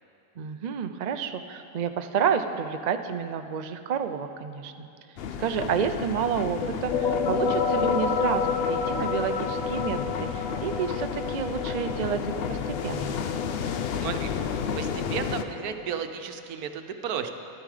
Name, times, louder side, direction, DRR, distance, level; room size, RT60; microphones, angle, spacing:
voice 1, 0.4-4.9 5.4-13.2, right 7 dB, 65° right, 8 dB, 0.4 m, -30 dB
sound 1, 5.2-15.4, left 7 dB, 60° left, 0.6 m, -32 dB
sound 2, 6.6-16.0, left 5 dB, 75° left, 1.2 m, -30 dB
voice 2, 14.0-14.3 14.7-17.3, right 8 dB, 90° right, 7 dB, 1.2 m, -33 dB
12.5 x 12.5 x 4.9 m, 2.8 s
omnidirectional pair, 1.5 m